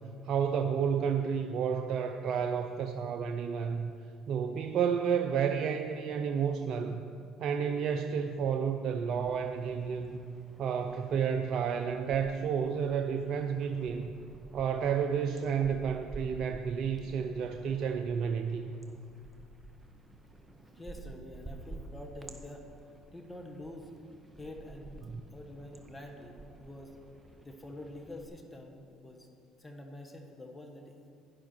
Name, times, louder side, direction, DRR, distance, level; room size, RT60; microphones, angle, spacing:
voice 1, 0.2-3.9 4.3-7.0 7.4-10.3 10.6-14.1 14.5-18.6 25.0-25.2, right 7 dB, 60° right, 6 dB, 0.5 m, -31 dB
sound 1, 9.1-12.3 12.6-28.3, right 2 dB, 15° right, 1.4 m, -51 dB
voice 2, 20.6-22.7 23.1-23.9 24.4-25.0 25.3-27.0 27.4-29.3 29.6-30.9, left 1 dB, 15° left, 3 dB, 1.5 m, -46 dB
11.0 x 10.5 x 4.6 m, 2.4 s
hypercardioid pair, 70°, 0 cm